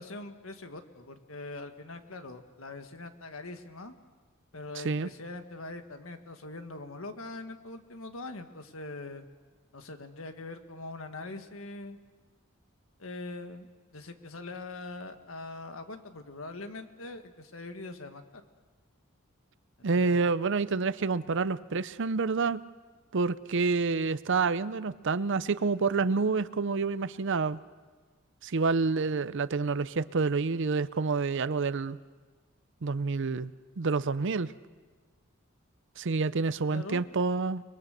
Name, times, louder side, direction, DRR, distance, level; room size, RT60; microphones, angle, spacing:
voice 1, 0.0-3.9 4.5-9.3 9.7-12.0 13.0-13.7 13.9-18.5 19.9-20.2 36.7-37.0, left 2 dB, 80° left, 7 dB, 1.8 m, -42 dB
voice 2, 19.8-22.6 23.1-27.6 28.4-32.0 32.8-33.5 33.8-34.5 36.0-37.6, right 4 dB, 60° right, 16 dB, 0.6 m, -28 dB
29.5 x 21.5 x 6.7 m, 1.4 s
head